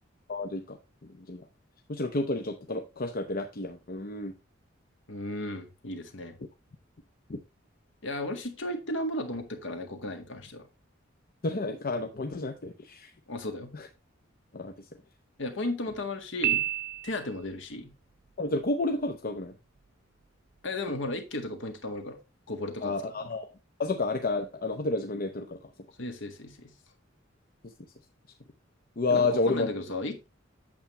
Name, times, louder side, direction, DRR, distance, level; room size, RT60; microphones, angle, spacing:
voice 1, 0.3-1.5 1.9-4.3 7.3-7.4 11.4-13.1 13.7-13.9 14.5-14.7 18.4-19.6 22.8-23.5 23.8-25.6 27.6-27.7 29.0-29.7, left 2 dB, 50° left, 0.8 m, -30 dB
voice 2, 5.1-6.4 8.0-10.7 13.3-13.7 15.4-16.6 17.0-17.9 20.6-22.2 22.5-23.0 26.0-26.7 29.1-30.3, left 1 dB, 70° left, 1.8 m, -35 dB
Piano, 16.4-17.5, right 13 dB, 50° right, 0.4 m, -29 dB
8.6 x 7.2 x 3.2 m
head